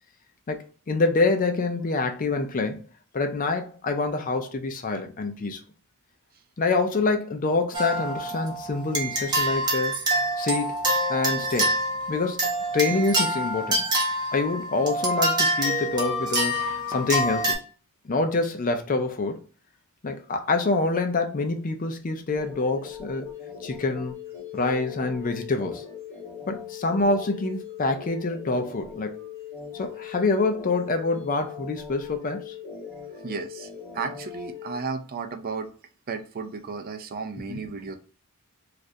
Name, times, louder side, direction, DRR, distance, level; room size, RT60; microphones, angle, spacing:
voice 1, 0.5-2.8 3.1-5.6 6.6-10.0 10.4-10.8 11.1-11.7 12.1-13.9 14.3-17.6 18.0-19.4 20.0-23.2 23.6-24.1 24.5-25.8 26.5-29.2 29.7-32.5 37.5-37.6, left 3 dB, 40° left, 0.5 m, -26 dB
sound 1, 7.7-17.6, right 1 dB, 20° right, 0.9 m, -26 dB
sound 2, 22.4-34.8, left 8 dB, 20° left, 1.3 m, -40 dB
voice 2, 33.2-35.7 36.1-38.0, right 5 dB, 45° right, 0.4 m, -34 dB
3.1 x 2.4 x 2.5 m
head